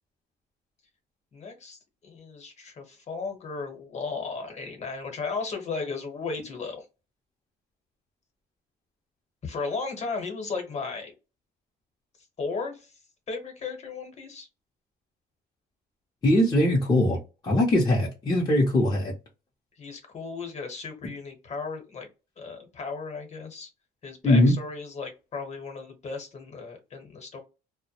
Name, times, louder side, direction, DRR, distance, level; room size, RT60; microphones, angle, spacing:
voice 1, 1.3-6.8 9.4-11.1 12.4-12.9 13.3-14.5 19.8-22.1 22.4-23.7 24.0-27.4, left 4 dB, 40° left, 4 dB, 1.0 m, -35 dB
voice 2, 16.2-17.2 17.4-19.1 24.2-24.5, left 1 dB, 25° left, -3 dB, 0.7 m, -21 dB
2.1 x 2.1 x 2.8 m, 0.28 s
cardioid pair, 110°, 17 cm